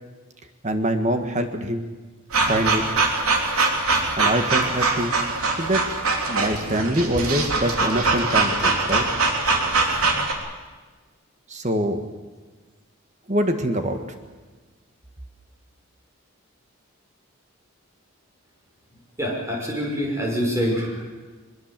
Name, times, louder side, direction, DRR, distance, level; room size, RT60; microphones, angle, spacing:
voice 1, 0.6-1.9 2.4-2.8 4.2-5.2 5.6-5.8 6.3-9.1 11.5-12.0 13.3-14.0, right 1 dB, 35° right, 7 dB, 1.6 m, -24 dB
sound 1, 2.3-10.3, right 3 dB, 80° right, 3.5 m, -22 dB
voice 2, 19.2-21.0, equal, 15° right, -1 dB, 5.8 m, -25 dB
22.5 x 22.0 x 7.6 m, 1.3 s
head